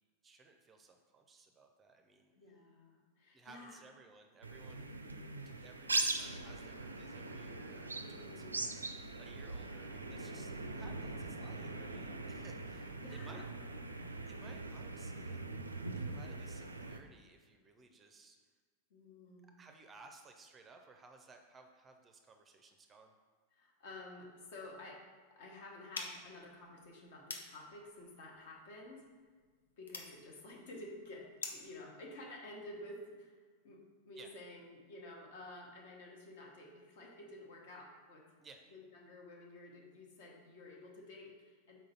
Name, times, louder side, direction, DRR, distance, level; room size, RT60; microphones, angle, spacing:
voice 1, 0.2-2.3 3.3-4.9 5.5-8.4 9.2-10.5 10.7-13.4 14.3-15.4 16.0-18.4 19.6-23.1 34.2-34.3 38.4-38.7, right 3 dB, 20° right, 5 dB, 0.5 m, -59 dB
voice 2, 2.3-3.8 8.0-8.6 10.2-10.8 13.0-13.5 18.9-19.6 23.5-25.0 25.3-29.1 29.8-33.3 33.6-38.3 38.7-41.8, left 2 dB, 55° left, -1 dB, 1.2 m, -52 dB
sound 1, 4.4-17.0, right 3 dB, 80° right, 0.4 m, -41 dB
sound 2, 25.9-31.8, left 3 dB, 70° left, 0.7 m, -49 dB
4.5 x 3.8 x 5.6 m, 1.5 s
figure-of-eight pair, 90°, 0 cm